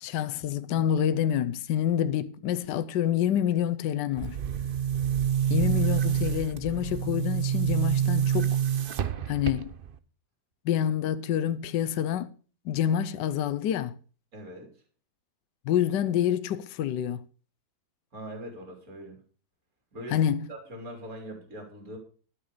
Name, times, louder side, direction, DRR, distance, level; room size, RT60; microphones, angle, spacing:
voice 1, 0.0-4.4 5.5-8.6 9.3-9.7 10.6-12.3 12.6-14.0 15.6-17.2 20.1-20.5, left 10 dB, 70° left, 1.3 m, -27 dB
Boom, 4.2-10.0, right 9 dB, 70° right, 0.5 m, -27 dB
voice 2, 14.3-14.7 18.1-19.2 19.9-20.2 20.5-22.0, equal, 50° right, 3.5 m, -41 dB
13.0 x 6.4 x 6.6 m
omnidirectional pair, 2.0 m